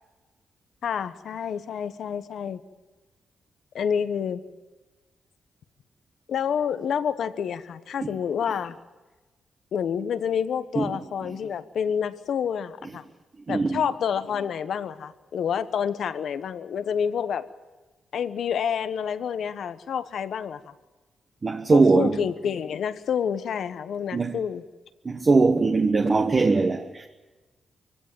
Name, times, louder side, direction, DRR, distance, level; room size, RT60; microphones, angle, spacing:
voice 1, 0.8-2.6 3.7-4.4 6.3-8.8 9.7-13.0 13.5-17.5 18.1-20.7 21.7-24.6, left 7 dB, 75° left, 1.1 m, -28 dB
voice 2, 13.5-13.8 21.4-22.2 24.1-24.4 25.0-27.1, right 3 dB, 35° right, 1.2 m, -21 dB
24.0 x 16.5 x 9.1 m
cardioid pair, 90°, 0 cm